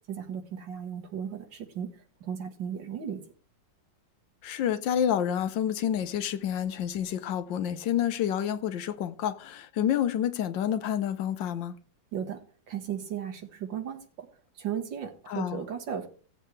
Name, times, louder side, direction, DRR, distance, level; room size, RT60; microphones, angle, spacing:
voice 1, 0.1-3.2 12.1-12.4 12.7-14.3 14.5-16.1, right 8 dB, 75° right, 2.2 m, -35 dB
voice 2, 4.4-11.8 15.3-15.6, left 9 dB, 80° left, 1.5 m, -29 dB
16.5 x 7.7 x 3.2 m
omnidirectional pair, 2.0 m